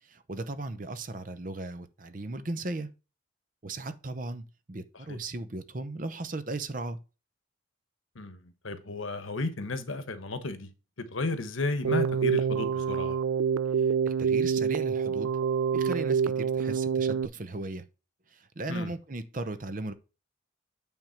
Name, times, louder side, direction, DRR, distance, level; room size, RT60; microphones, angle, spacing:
voice 1, 0.0-2.9 3.6-7.0 13.8-15.3 15.7-17.9 18.3-19.9, right 2 dB, 40° right, 0.7 m, -37 dB
voice 2, 8.1-10.7 11.0-13.2 18.7-18.9, left 2 dB, 85° left, 1.2 m, -33 dB
Keyboard (musical), 11.8-17.3, right 6 dB, 90° right, 0.4 m, -26 dB
9.0 x 3.6 x 5.8 m
head